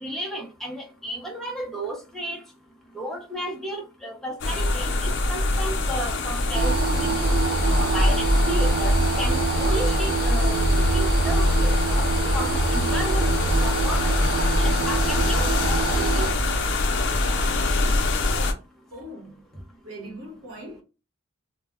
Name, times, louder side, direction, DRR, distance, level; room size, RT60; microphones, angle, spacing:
voice 1, 0.0-2.4 2.9-7.3 7.7-12.1 12.3-14.2 14.6-16.3, equal, ahead, 0.6 m, -33 dB
sound 1, 4.4-18.5, left 2 dB, 60° left, 0.5 m, -24 dB
sound 2, 6.5-16.3, right 3 dB, 45° right, 0.3 m, -25 dB
voice 2, 18.9-20.8, equal, 75° right, 1.0 m, -41 dB
2.2 x 2.1 x 3.4 m
head